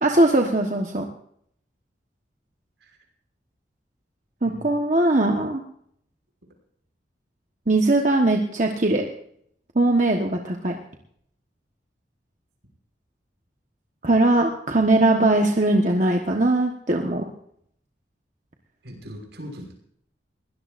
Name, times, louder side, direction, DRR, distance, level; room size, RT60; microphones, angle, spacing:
voice 1, 0.0-1.1 4.4-5.6 7.7-9.1 9.7-10.7 14.0-17.2, right 2 dB, 40° right, 2 dB, 1.3 m, -20 dB
voice 2, 18.8-19.7, equal, 75° right, 1 dB, 5.9 m, -40 dB
22.5 x 17.0 x 2.6 m, 0.67 s
head